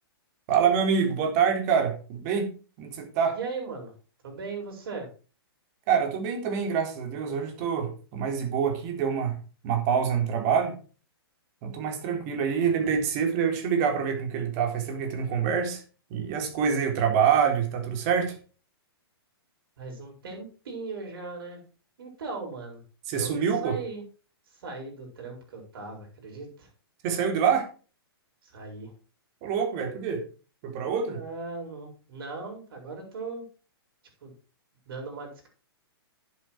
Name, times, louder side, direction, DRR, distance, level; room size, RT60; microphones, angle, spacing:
voice 1, 0.5-2.5 2.8-3.4 5.9-9.4 9.6-10.8 11.6-15.8 16.1-18.4 23.1-23.8 27.0-27.7 29.4-30.3 30.6-31.2, right 7 dB, 40° right, 4 dB, 3.7 m, -26 dB
voice 2, 3.4-3.9 4.2-5.1 19.8-21.6 22.0-22.8 23.1-24.0 24.5-26.7 28.4-28.9 31.1-33.5 34.2-34.3 34.9-35.5, right 3 dB, 65° right, 0 dB, 7.2 m, -38 dB
10.5 x 8.5 x 4.7 m, 0.37 s
hypercardioid pair, 130°, 13 cm